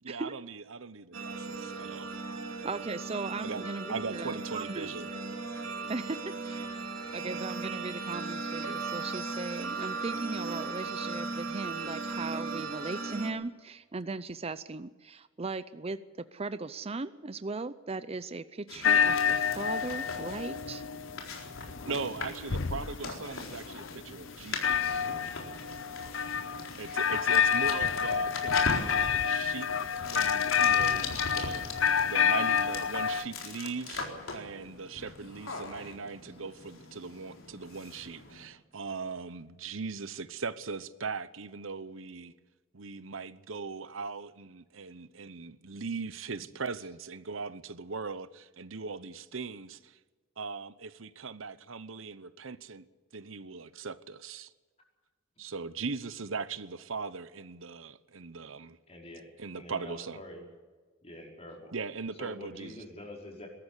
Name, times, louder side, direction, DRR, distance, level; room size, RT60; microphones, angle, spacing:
voice 1, 0.0-2.2 3.4-3.6 3.9-5.1 21.9-25.1 26.8-29.7 30.1-42.3 42.7-50.0 50.4-52.9 53.1-54.5 55.4-58.8 59.4-60.2 61.7-62.8, right 4 dB, 70° right, 1.0 m, -39 dB
sound 1, 1.1-13.3, right 3 dB, 85° right, 2.8 m, -37 dB
voice 2, 2.6-4.9 5.9-6.7 7.1-16.0 16.3-20.8, right 3 dB, 30° right, 0.6 m, -38 dB
sound 2, 18.7-38.5, left 3 dB, 85° left, 4.1 m, -41 dB
sound 3, 18.8-33.3, left 7 dB, 65° left, 0.9 m, -29 dB
voice 3, 58.9-59.2 59.5-60.4 61.0-61.7 62.2-63.5, left 1 dB, 30° left, 5.2 m, -45 dB
21.5 x 13.0 x 9.7 m
head